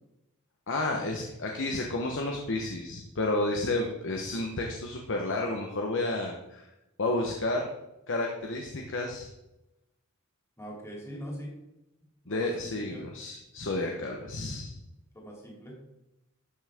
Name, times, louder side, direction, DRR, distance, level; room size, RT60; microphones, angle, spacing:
voice 1, 0.7-6.7 7.0-7.7 8.1-9.3 12.3-14.7, left 2 dB, 60° left, 1 dB, 1.1 m, -31 dB
voice 2, 10.6-11.5 12.2-13.0 15.1-15.8, equal, 15° left, -2 dB, 2.7 m, -42 dB
12.5 x 6.2 x 3.6 m, 0.92 s
head